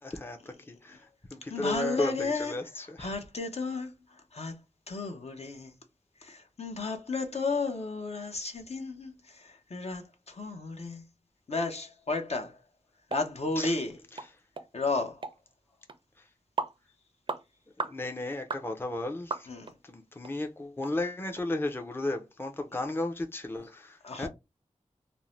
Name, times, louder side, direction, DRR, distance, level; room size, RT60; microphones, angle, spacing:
voice 1, 0.0-3.1 13.6-13.8 14.1-14.3 16.2-16.3 17.8-19.5 19.8-24.3, left 2 dB, 15° left, 0.5 m, -34 dB
voice 2, 1.5-2.5 3.0-3.9 4.3-4.5 4.9-5.7 6.2-11.0 11.5-12.6 13.1-13.9 14.7-15.2 19.5-19.7 24.0-24.3, left 3 dB, 55° left, 0.7 m, -33 dB
sound 1, 13.1-13.3 13.6-13.7 14.2-14.3 14.6-14.7 15.2-15.4 15.9-16.0 16.6-16.8 17.3-17.4 17.8-18.0 18.5-18.7 19.3-19.7 20.2-20.3 20.8-20.9 21.4-21.5, right 3 dB, 40° right, 0.4 m, -35 dB
2.6 x 2.0 x 3.1 m
wide cardioid pair, 50°, 13 cm